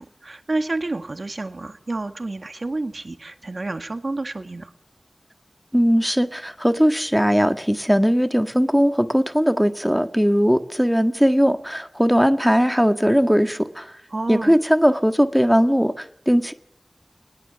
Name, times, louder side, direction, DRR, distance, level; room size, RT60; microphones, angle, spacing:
voice 1, 0.0-4.7 14.1-14.6, right 2 dB, 65° right, 8 dB, 1.7 m, -29 dB
voice 2, 5.7-13.9 14.3-16.5, equal, 5° right, 8 dB, 1.7 m, -19 dB
21.0 x 20.5 x 7.0 m, 0.65 s
wide cardioid pair, 40°, 0 cm